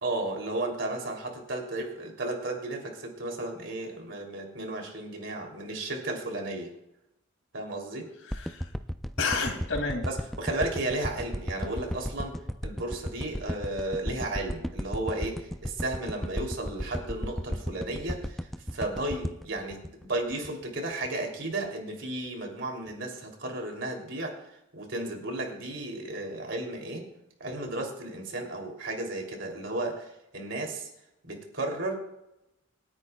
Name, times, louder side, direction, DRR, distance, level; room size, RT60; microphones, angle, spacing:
voice 1, 0.0-6.7 7.5-8.1 10.0-12.4 12.6-18.4 18.7-24.3 24.7-27.1 27.4-30.1 30.3-30.9 31.2-31.9, right 2 dB, 65° right, 1 dB, 3.3 m, -34 dB
voice 2, 8.2-8.7 9.2-10.1, left 4 dB, 75° left, 3 dB, 2.7 m, -30 dB
sound 1, 8.3-20.6 21.0-21.1, equal, ahead, 0.4 m, -34 dB
28.0 x 9.7 x 2.4 m, 0.86 s
head